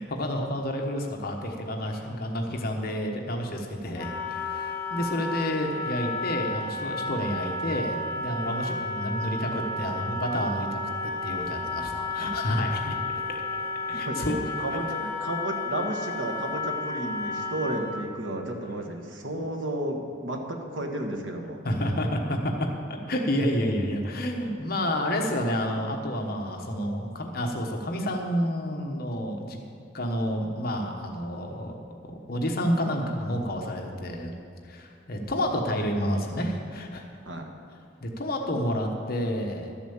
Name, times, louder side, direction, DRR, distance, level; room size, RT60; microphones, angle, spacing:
voice 1, 0.0-13.4 13.9-14.5 21.6-22.7 23.1-29.6 29.9-31.8 32.0-34.3 34.6-37.0 38.0-39.7, equal, 55° left, 2 dB, 1.2 m, -29 dB
Wind instrument woodwind instrument, 3.9-18.1, left 3 dB, 10° left, 1.5 m, -32 dB
voice 2, 13.9-21.6 37.2-37.5, right 1 dB, 80° right, 2 dB, 1.6 m, -33 dB
12.5 x 7.2 x 7.1 m, 2.3 s
head